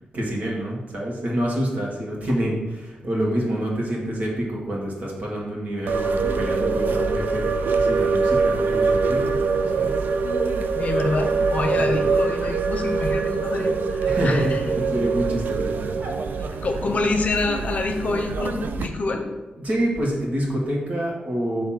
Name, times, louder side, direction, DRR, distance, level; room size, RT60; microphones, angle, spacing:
voice 1, 0.1-9.4 9.7-10.1 11.8-11.9 14.0-16.6 19.6-21.6, equal, 55° right, -3 dB, 1.8 m, -27 dB
sound 1, 5.9-18.9, right 4 dB, 75° right, 0.4 m, -24 dB
voice 2, 10.8-14.7 16.6-19.3, left 3 dB, 50° left, 4 dB, 0.8 m, -26 dB
6.7 x 3.1 x 5.8 m, 1.2 s
wide cardioid pair, 140°, 3 cm